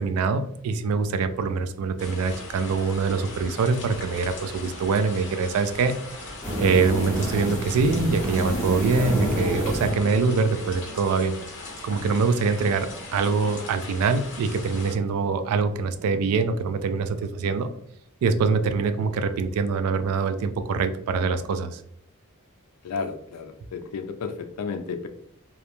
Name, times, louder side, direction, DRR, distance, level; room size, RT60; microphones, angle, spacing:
voice 1, 0.0-5.9 6.6-11.4 11.8-17.7 18.2-21.8, right 4 dB, 70° right, 12 dB, 0.3 m, -24 dB
sound 1, 2.0-15.0, left 2 dB, 55° left, 0.7 m, -39 dB
sound 2, 6.4-11.0, right 1 dB, 5° left, 0.7 m, -28 dB
voice 2, 22.8-25.1, left 5 dB, 90° left, 7 dB, 0.4 m, -32 dB
2.3 x 2.1 x 2.9 m, 0.68 s
head